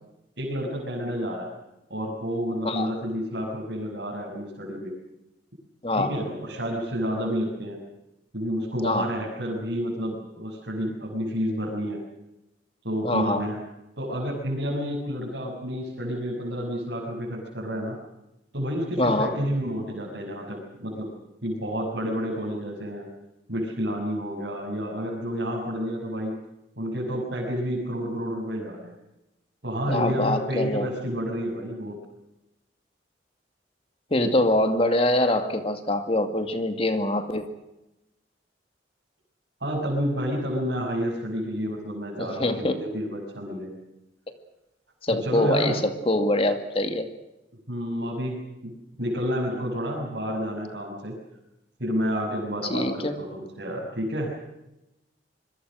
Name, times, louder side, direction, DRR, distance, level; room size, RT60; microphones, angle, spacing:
voice 1, 0.4-1.5 1.9-4.9 6.0-7.8 8.3-12.0 12.8-13.6 14.0-18.0 18.5-21.1 21.4-23.1 23.5-26.3 26.8-28.9 29.6-32.0 39.6-43.7 45.2-45.8 47.7-48.7 49.0-51.1 51.8-54.3, equal, 65° right, -4 dB, 6.3 m, -30 dB
voice 2, 2.6-3.0 5.8-6.2 8.8-9.1 13.0-13.5 19.0-19.4 29.9-30.9 34.1-37.4 42.2-42.8 45.0-47.1 52.7-53.2, left 1 dB, 30° left, 7 dB, 2.3 m, -24 dB
26.5 x 22.5 x 6.4 m, 0.93 s
head